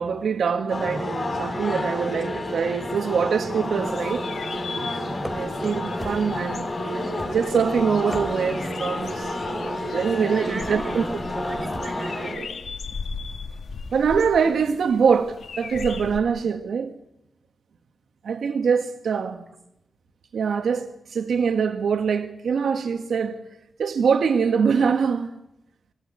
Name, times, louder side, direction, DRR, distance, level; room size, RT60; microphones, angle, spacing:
voice 1, 0.0-4.3 5.3-7.0 7.3-11.0 13.9-16.9 18.2-19.4 20.3-23.4 23.8-25.3, right 6 dB, 85° right, 1.6 m, -24 dB
sound 1, 0.7-12.3, left 1 dB, 35° left, 7.5 m, -30 dB
sound 2, 3.6-16.2, left 5 dB, 75° left, 2.5 m, -39 dB
sound 3, 5.2-5.6 6.0-6.5 7.2-7.6 8.0-8.6 9.4-9.8 10.6-10.9 11.7-12.1, equal, 5° right, 3.4 m, -38 dB
voice 2, 10.3-12.7 19.1-19.3, right 2 dB, 30° right, 5.8 m, -39 dB
25.0 x 17.0 x 9.7 m
wide cardioid pair, 110°, 0 cm